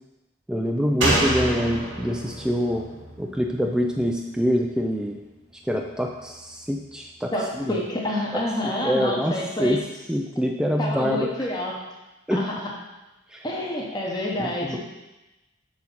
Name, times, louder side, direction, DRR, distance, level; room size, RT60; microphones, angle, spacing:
voice 1, 0.5-2.9 3.2-5.2 5.7-7.3 7.7-7.8 8.6-9.8 10.1-11.3 12.3-12.4 13.3-13.4 14.4-14.8, equal, 5° right, 1 dB, 0.4 m, -25 dB
Slam, 1.0-4.5 4.8-4.9, right 1 dB, 80° right, 1.7 m, -27 dB
voice 2, 7.3-9.8 10.8-11.8 12.3-12.7 13.4-14.8, left 1 dB, 20° left, -3 dB, 1.0 m, -28 dB
6.4 x 4.2 x 5.6 m, 1.0 s
head